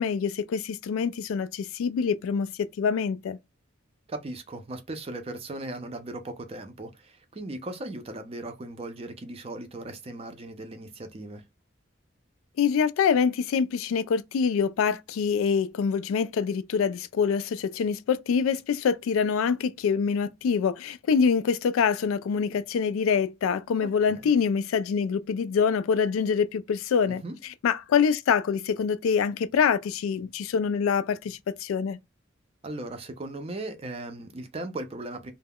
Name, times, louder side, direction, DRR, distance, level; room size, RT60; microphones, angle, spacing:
voice 1, 0.0-3.4 12.6-27.2 27.6-32.0, left 6 dB, 90° left, 0.3 m, -25 dB
voice 2, 4.1-11.4 24.1-24.3 27.1-27.3 32.6-35.3, right 2 dB, 30° right, 0.4 m, -38 dB
2.3 x 2.0 x 3.4 m
head